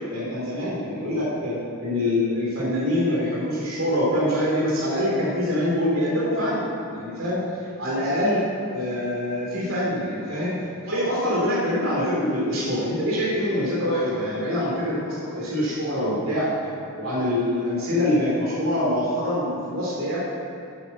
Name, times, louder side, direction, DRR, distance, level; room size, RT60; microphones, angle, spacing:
voice 1, 0.1-10.6 10.8-16.5 17.0-20.2, left 1 dB, 70° right, -6 dB, 3.1 m, -25 dB
10.0 x 8.6 x 7.2 m, 2.6 s
head